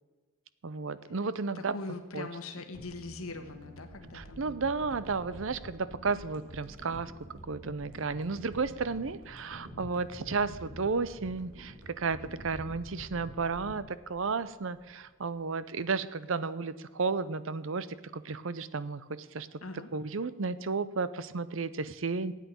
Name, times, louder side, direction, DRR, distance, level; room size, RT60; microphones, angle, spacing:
voice 1, 0.6-1.7 2.1-2.3 4.1-7.1 7.5-17.9 18.1-19.5 19.9-22.3, right 4 dB, 65° right, 15 dB, 0.6 m, -33 dB
voice 2, 1.5-4.6 19.6-19.9, left 3 dB, 80° left, 6 dB, 1.4 m, -41 dB
sound 1, 2.7-15.1 15.4-15.5, equal, 90° right, 2.8 m, -48 dB
9.2 x 8.4 x 8.3 m, 1.3 s
head